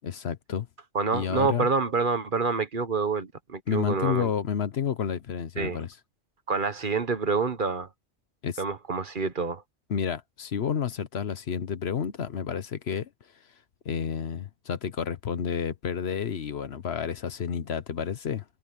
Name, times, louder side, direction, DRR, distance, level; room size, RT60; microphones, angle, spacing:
voice 1, 0.0-0.7 1.1-1.7 3.7-5.9 8.4-8.6 9.9-13.1 13.8-18.4, left 7 dB, 65° left, 1.1 m, -30 dB
voice 2, 0.9-4.3 5.6-5.8 6.5-7.9 8.6-9.6, right 4 dB, 45° right, 1.2 m, -27 dB
omnidirectional pair, 1.2 m